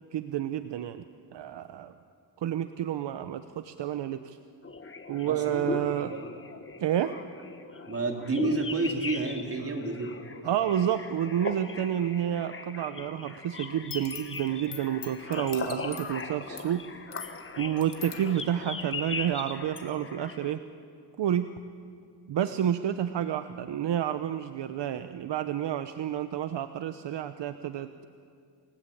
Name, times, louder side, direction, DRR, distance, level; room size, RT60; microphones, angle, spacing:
voice 1, 0.1-1.0 1.3-1.9 2.4-4.4 5.1-6.1 6.8-7.1 10.4-16.8 17.6-20.6 21.2-21.5 22.3-28.1, right 10 dB, 65° right, 10 dB, 0.8 m, -30 dB
sound 1, 4.6-20.5, left 4 dB, 25° left, 1.4 m, -39 dB
voice 2, 5.2-6.3 7.9-10.1, right 3 dB, 30° right, 1 dB, 3.2 m, -30 dB
sound 2, 13.7-19.4 19.7-19.8, left 7 dB, 60° left, 2.5 m, -45 dB
29.0 x 18.5 x 8.6 m, 2.4 s
wide cardioid pair, 150°, 45 cm